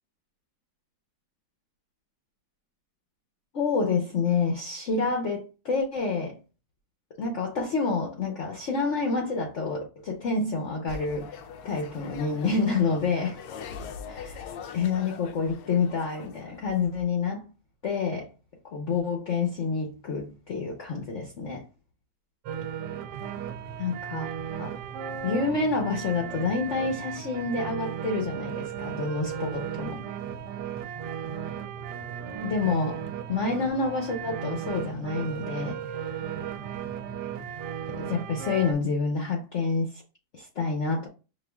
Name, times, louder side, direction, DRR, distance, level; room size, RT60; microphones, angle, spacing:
voice 1, 3.5-6.4 7.2-11.4 11.6-13.4 14.1-17.4 17.8-18.3 18.6-21.6 23.8-24.3 24.6-24.7 25.2-30.0 32.4-33.0 33.3-36.3 37.9-40.0 40.3-41.1, left 4 dB, 55° left, 0.9 m, -28 dB
sound 1, 10.9-17.0, left 6 dB, 75° left, 1.2 m, -42 dB
sound 2, 22.4-38.7, right 8 dB, 75° right, 1.1 m, -35 dB
6.4 x 2.5 x 2.2 m
omnidirectional pair, 1.9 m